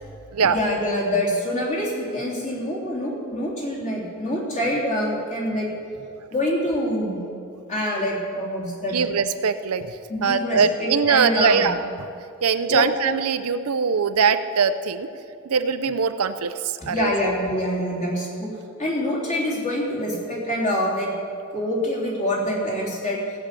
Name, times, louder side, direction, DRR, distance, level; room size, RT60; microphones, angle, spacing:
voice 1, 0.4-5.7 6.3-7.2 7.7-9.0 10.1-11.7 12.7-12.9 16.9-18.5 18.8-21.1 21.5-23.2, left 1 dB, 35° left, -5 dB, 3.2 m, -25 dB
voice 2, 8.9-9.9 10.2-11.8 12.4-15.1 15.5-16.5 16.9-17.1, right 6 dB, 80° right, 10 dB, 0.6 m, -21 dB
16.0 x 6.7 x 8.3 m, 2.5 s
head